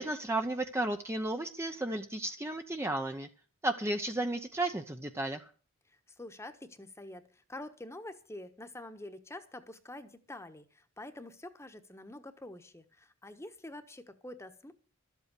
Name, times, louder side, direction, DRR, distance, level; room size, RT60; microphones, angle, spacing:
voice 1, 0.0-3.3 3.6-5.4, right 2 dB, 10° right, 6 dB, 0.7 m, -33 dB
voice 2, 6.2-14.7, left 1 dB, 15° left, 9 dB, 1.2 m, -47 dB
13.0 x 8.2 x 8.3 m, 0.41 s
head